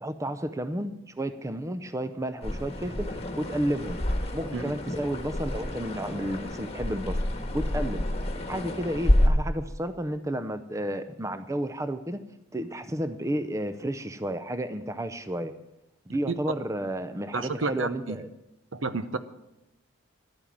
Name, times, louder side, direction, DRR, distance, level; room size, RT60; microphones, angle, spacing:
voice 1, 0.0-4.0 4.3-7.3 7.5-8.0 8.5-12.2 12.5-15.5 16.1-18.3, right 1 dB, 15° right, 10 dB, 0.6 m, -32 dB
sound 1, 2.4-9.3, left 1 dB, 30° left, 1.5 m, -29 dB
voice 2, 17.3-18.2 18.7-19.2, right 3 dB, 70° right, 11 dB, 0.8 m, -30 dB
11.5 x 8.9 x 7.4 m, 0.89 s
head